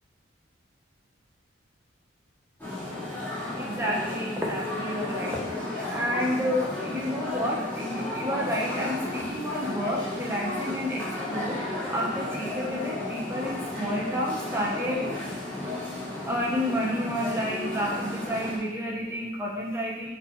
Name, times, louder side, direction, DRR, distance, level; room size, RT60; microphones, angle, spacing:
sound 1, 2.6-18.6, left 2 dB, 10° left, 2.9 m, -33 dB
voice 1, 3.6-5.6 5.8-15.2 16.2-20.1, equal, 15° right, -3 dB, 1.5 m, -30 dB
5.7 x 5.7 x 5.7 m, 1.0 s
head